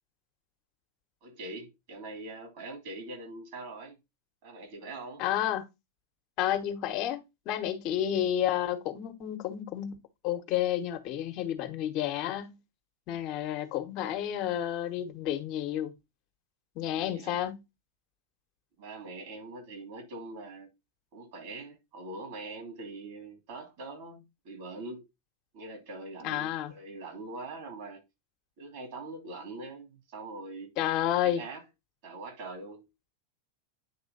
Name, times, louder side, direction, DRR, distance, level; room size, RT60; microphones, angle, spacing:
voice 1, 1.2-4.0 4.4-5.2 16.9-17.4 18.8-20.7 21.1-25.0 25.5-28.0 28.6-30.7 31.1-31.6 32.0-32.9, right 2 dB, 55° right, 2.9 m, -43 dB
voice 2, 5.2-5.6 6.4-12.6 13.1-15.9 16.7-17.6 26.2-26.7 30.8-31.4, left 11 dB, 50° left, 1.2 m, -31 dB
9.5 x 3.3 x 4.1 m
hypercardioid pair, 90°, 0 cm